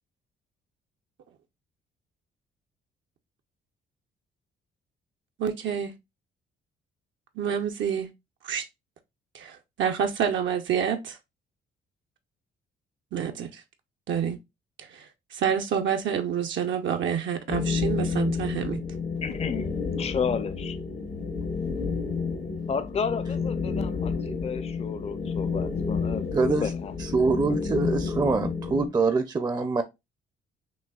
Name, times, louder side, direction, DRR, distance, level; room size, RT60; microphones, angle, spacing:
voice 1, 5.4-5.9 7.4-8.1 8.4-8.7 9.3-11.2 13.1-13.6 14.1-14.4 14.8-15.1 15.3-18.8, right 8 dB, 70° right, 0.7 m, -28 dB
sound 1, 17.5-28.9, left 5 dB, 60° left, 1.0 m, -30 dB
voice 2, 19.2-20.8 22.7-26.9, left 6 dB, 30° left, 0.5 m, -32 dB
voice 3, 26.3-26.7 27.0-29.8, right 4 dB, 20° right, 0.5 m, -24 dB
6.1 x 2.7 x 2.3 m
cardioid pair, 90°, 20 cm